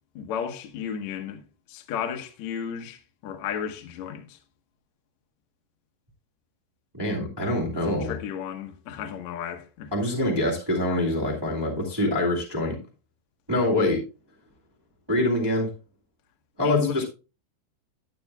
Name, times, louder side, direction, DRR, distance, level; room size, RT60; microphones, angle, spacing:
voice 1, 0.2-1.4 1.7-4.4 7.9-9.9 16.6-17.0, left 8 dB, 70° left, 1.8 m, -33 dB
voice 2, 6.9-8.1 9.9-12.8 13.5-14.0 15.1-15.7 16.6-17.1, left 1 dB, 10° right, 1.1 m, -25 dB
12.0 x 8.6 x 2.3 m
omnidirectional pair, 4.7 m